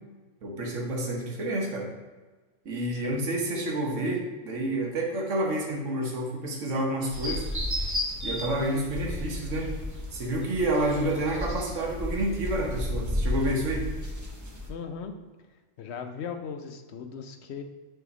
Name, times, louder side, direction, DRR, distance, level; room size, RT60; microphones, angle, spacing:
voice 1, 0.4-1.9 2.6-7.4 8.2-9.7 10.1-13.9, right 1 dB, 75° right, -1 dB, 1.5 m, -29 dB
voice 2, 2.9-3.3 14.7-15.1 15.8-17.6, left 6 dB, 65° left, 6 dB, 0.9 m, -38 dB
sound 1, 7.1-14.7, left 1 dB, 20° right, 0.6 m, -33 dB
6.9 x 3.5 x 5.0 m, 1.3 s
omnidirectional pair, 1.3 m